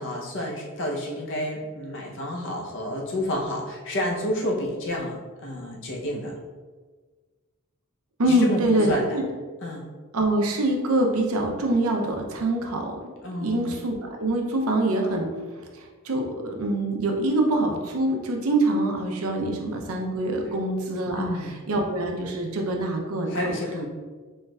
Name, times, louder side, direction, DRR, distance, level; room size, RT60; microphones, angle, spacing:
voice 1, 0.0-6.3 8.3-9.2 9.6-9.9 13.2-13.7 20.5-20.6 21.2-21.6 23.3-23.8, left 1 dB, 60° left, -1 dB, 0.7 m, -30 dB
voice 2, 8.2-9.2 10.1-12.9 13.4-15.3 15.5-21.3 21.7-23.3, right 1 dB, 70° right, 1 dB, 0.6 m, -24 dB
4.5 x 3.1 x 2.3 m, 1.4 s
head